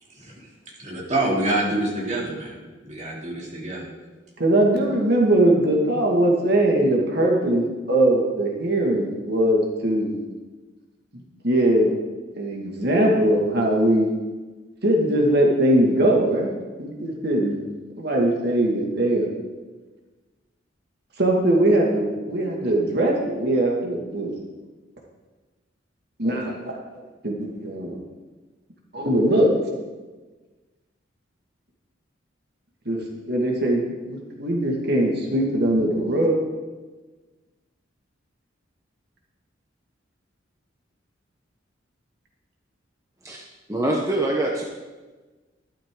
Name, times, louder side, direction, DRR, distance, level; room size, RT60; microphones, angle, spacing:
voice 1, 0.1-0.5 0.8-3.9, right 1 dB, 35° right, -3 dB, 2.9 m, -27 dB
voice 2, 4.4-10.2 11.4-11.9 12.3-14.1 14.8-17.6 18.0-19.3 21.2-24.3 26.2-26.8 27.2-28.0 28.9-29.5 32.9-33.0 33.3-36.4, right 1 dB, 55° right, -1 dB, 2.1 m, -21 dB
voice 3, 43.7-44.6, right 1 dB, 15° right, -1 dB, 1.0 m, -24 dB
12.5 x 11.5 x 3.8 m, 1.3 s
head